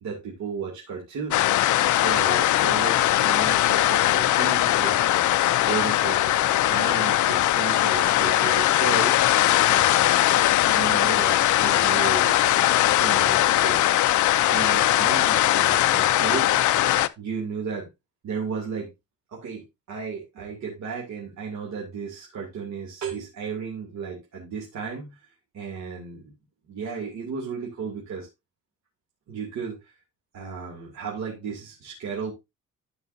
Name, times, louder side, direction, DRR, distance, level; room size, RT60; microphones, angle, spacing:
voice 1, 0.0-1.5 1.9-5.1 5.7-9.1 9.7-10.0 10.7-13.9 14.5-17.9 18.2-18.9 19.3-19.6 19.9-25.1 25.5-26.3 26.7-28.3 29.3-29.8 30.3-32.3, right 6 dB, 65° right, -2 dB, 2.7 m, -34 dB
sound 1, 1.3-17.1, left 14 dB, 70° left, 0.5 m, -20 dB
13.0 x 5.6 x 2.6 m, 0.22 s
cardioid pair, 145°, 31 cm